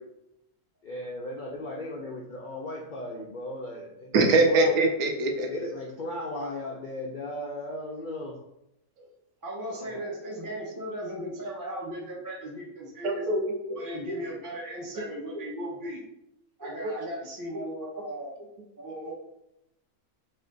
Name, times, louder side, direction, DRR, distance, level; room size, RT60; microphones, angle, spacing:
voice 1, 0.8-4.2 4.5-4.8 5.5-8.3 9.7-10.0, left 1 dB, 90° left, -2 dB, 0.4 m, -36 dB
voice 2, 4.1-5.5 13.0-13.8 16.8-16.9, right 2 dB, 80° right, 2 dB, 1.1 m, -23 dB
voice 3, 9.4-13.2 13.7-16.0 16.6-18.3 18.8-19.1, equal, 25° right, -4 dB, 0.5 m, -37 dB
4.2 x 2.5 x 3.8 m, 0.83 s
omnidirectional pair, 1.6 m